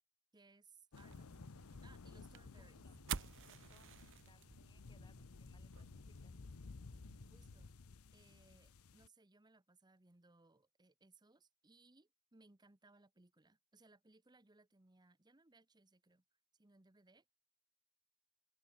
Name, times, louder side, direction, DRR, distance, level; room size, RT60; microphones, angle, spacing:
voice 1, 0.3-1.4 1.8-2.9 3.6-3.9 7.3-7.7 8.1-16.2 16.5-17.2, right 3 dB, 20° right, 0.9 m, -67 dB
sound 1, 0.9-9.1, left 4 dB, 70° left, 0.7 m, -56 dB
sound 2, 1.0-7.7, right 7 dB, 55° right, 0.9 m, -52 dB
voice 2, 2.7-6.3, left 3 dB, 20° left, 2.5 m, -73 dB
open air
head